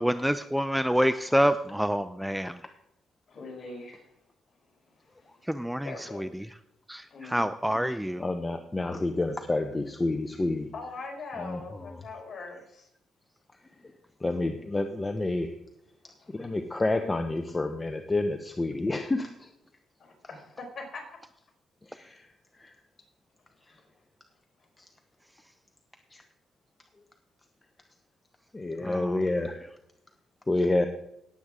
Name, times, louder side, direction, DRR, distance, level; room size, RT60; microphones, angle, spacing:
voice 1, 0.0-2.6 5.5-6.5 6.9-8.2 28.8-29.2, equal, 5° right, 12 dB, 0.5 m, -27 dB
voice 2, 3.3-4.1 5.1-5.4 5.8-6.3 7.1-7.5 10.7-12.9 16.2-16.5 20.0-21.0 23.7-23.9, left 3 dB, 45° left, 0 dB, 4.5 m, -42 dB
voice 3, 8.2-10.7 11.4-12.0 13.5-15.5 16.3-19.5 21.8-22.8 23.6-23.8 24.8-24.9 26.1-26.2 28.5-29.7 30.5-30.9, left 2 dB, 20° left, 6 dB, 0.9 m, -29 dB
18.0 x 8.1 x 3.7 m, 0.80 s
cardioid pair, 90°, 0 cm